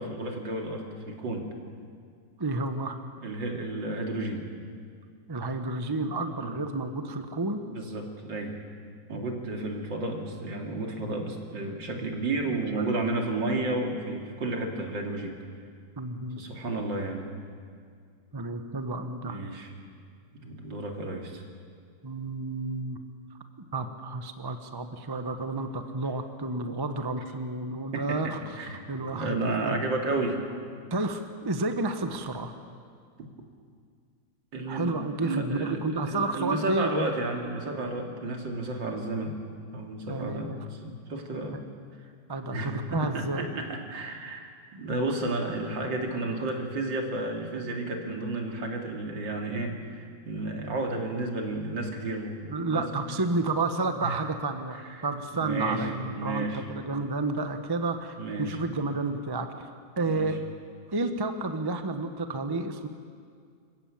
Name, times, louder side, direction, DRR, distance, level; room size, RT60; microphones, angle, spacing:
voice 1, 0.0-1.5 3.2-4.5 6.4-6.5 7.7-8.6 9.1-15.4 16.4-17.3 19.2-19.7 20.4-21.4 27.9-28.8 29.1-30.4 33.2-33.3 34.5-39.4 39.7-41.6 42.5-53.1 54.0-54.2 54.7-55.1 55.3-56.7 58.2-58.6 60.0-60.3, right 2 dB, 70° right, 2 dB, 3.1 m, -32 dB
voice 2, 2.4-3.0 5.3-7.6 12.5-12.9 16.0-16.4 18.3-19.4 22.0-23.0 23.7-28.6 28.9-29.8 30.9-32.5 34.7-36.9 40.1-40.6 41.5-41.6 42.3-43.5 52.5-59.7 60.0-60.4 60.9-62.9, right 2 dB, 15° right, 7 dB, 0.9 m, -31 dB
26.5 x 15.0 x 8.8 m, 2.2 s
omnidirectional pair, 2.0 m